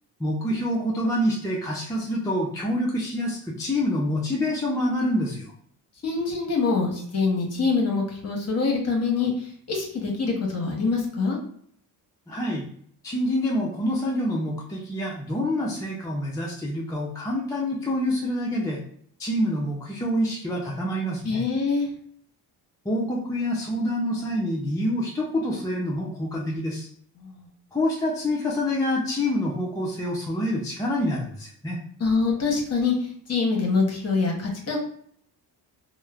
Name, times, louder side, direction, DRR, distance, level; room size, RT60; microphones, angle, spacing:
voice 1, 0.2-5.4 12.3-12.7 13.0-18.8 19.2-21.4 22.8-26.9 27.7-31.8, left 1 dB, 10° left, -3 dB, 0.5 m, -26 dB
voice 2, 6.0-11.4 21.2-21.9 27.2-27.5 32.0-34.8, left 4 dB, 35° left, 0 dB, 0.9 m, -25 dB
2.9 x 2.1 x 2.3 m, 0.62 s
cardioid pair, 85°, 42 cm